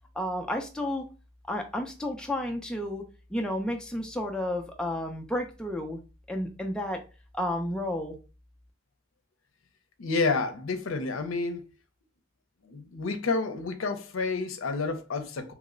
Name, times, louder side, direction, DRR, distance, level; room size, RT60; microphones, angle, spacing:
voice 1, 0.2-1.0 1.5-3.0 3.3-6.0 6.3-7.0 7.3-8.2, left 1 dB, 5° left, 0.3 m, -31 dB
voice 2, 10.0-11.7 12.6-15.5, left 3 dB, 80° left, 0.5 m, -29 dB
2.9 x 2.0 x 3.6 m
head